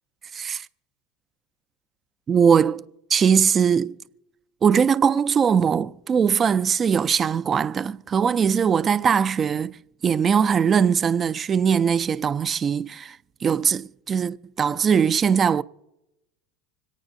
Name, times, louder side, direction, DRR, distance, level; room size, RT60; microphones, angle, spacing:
voice 1, 0.3-0.7 2.3-2.8 3.1-3.9 4.6-9.8 10.0-15.6, right 7 dB, 30° right, 0.4 m, -21 dB
26.0 x 9.0 x 2.6 m
hypercardioid pair, 85°, 0 cm